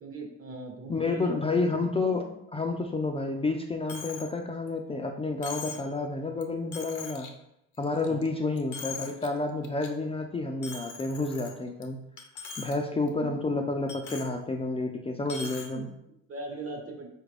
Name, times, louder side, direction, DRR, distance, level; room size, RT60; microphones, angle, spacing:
voice 1, 0.0-1.6 2.2-2.4 5.7-5.8 8.0-8.3 13.1-13.3 15.5-15.9 16.3-17.1, right 3 dB, 50° right, 2 dB, 1.0 m, -40 dB
voice 2, 0.9-7.3 7.8-12.0 12.6-15.9, left 3 dB, 20° left, 2 dB, 0.3 m, -30 dB
Coin (dropping), 3.9-4.3 4.7-4.8 5.4-5.9 6.4-6.5 6.7-7.3 7.7-8.3 8.6-9.3 9.6-9.9 10.6-11.8 12.2-12.7 13.1-13.2 13.9-14.3 15.3-15.7, left 5 dB, 75° left, 0.7 m, -41 dB
4.3 x 2.4 x 3.3 m, 0.79 s
cardioid pair, 90°, 30 cm